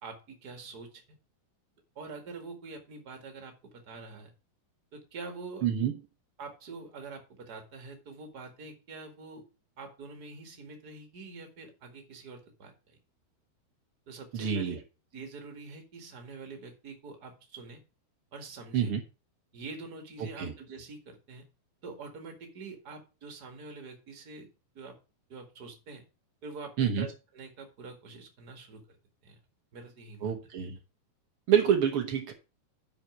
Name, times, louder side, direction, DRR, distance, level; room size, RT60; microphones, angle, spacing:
voice 1, 0.0-1.2 1.9-4.3 4.9-5.6 6.4-9.4 9.8-13.0 14.1-14.8 15.1-17.8 18.3-18.9 19.5-21.5 21.8-24.5 24.7-25.0 25.3-26.0 26.4-29.0 29.2-29.4 29.7-30.3, right 4 dB, 35° right, 5 dB, 1.6 m, -45 dB
voice 2, 5.6-5.9 14.3-14.8 18.7-19.0 20.2-20.5 26.8-27.1 30.2-30.8 31.5-32.3, right 8 dB, 90° right, 4 dB, 1.2 m, -27 dB
8.7 x 5.9 x 6.0 m, 0.31 s
omnidirectional pair, 4.4 m